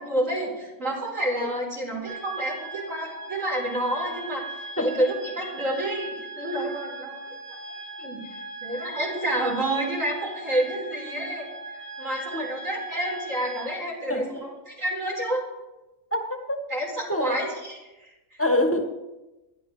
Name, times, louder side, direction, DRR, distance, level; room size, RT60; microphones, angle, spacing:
voice 1, 0.0-7.2 7.5-8.2 8.6-15.4 16.7-18.4, right 1 dB, 60° right, -3 dB, 4.6 m, -29 dB
sound 1, 2.0-13.7, right 3 dB, 85° right, 7.1 m, -39 dB
voice 2, 16.1-16.6 17.1-17.4 18.4-18.8, left 1 dB, 10° left, 2 dB, 1.6 m, -25 dB
27.5 x 11.5 x 3.3 m, 1.0 s
omnidirectional pair, 1.5 m